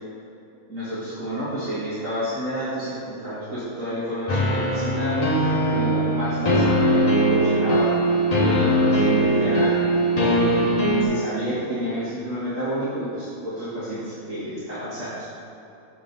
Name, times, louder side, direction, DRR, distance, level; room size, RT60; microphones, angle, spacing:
voice 1, 0.7-7.9 8.4-9.8 10.2-15.3, equal, 65° right, -12 dB, 2.1 m, -30 dB
sound 1, 4.3-11.0, right 1 dB, 35° left, 0.9 m, -20 dB
7.3 x 6.9 x 3.9 m, 2.8 s
omnidirectional pair, 1.4 m